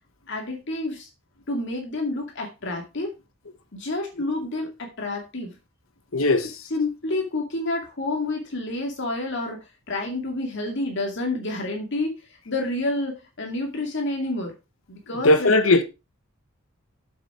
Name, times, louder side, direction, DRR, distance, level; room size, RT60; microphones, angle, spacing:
voice 1, 0.3-1.1 1.5-3.1 3.7-5.6 6.7-12.1 12.5-14.5 14.9-15.5, left 2 dB, 60° left, 2.3 m, -29 dB
voice 2, 6.1-6.5 15.2-15.8, left 2 dB, 85° left, 1.4 m, -18 dB
7.6 x 6.9 x 4.9 m
head